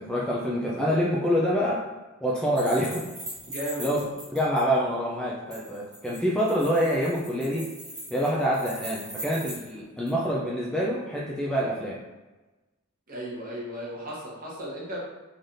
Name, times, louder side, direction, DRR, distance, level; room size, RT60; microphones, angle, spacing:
voice 1, 0.0-1.8 2.2-3.1 3.8-4.0 4.3-7.7 8.1-12.0, equal, 5° left, -5 dB, 0.4 m, -26 dB
sound 1, 2.6-4.6 5.5-9.7 10.1-10.2, right 1 dB, 20° right, 1.0 m, -40 dB
voice 2, 3.4-3.9 13.1-15.0, right 1 dB, 40° right, -5 dB, 1.0 m, -35 dB
4.0 x 3.2 x 2.6 m, 1.2 s
head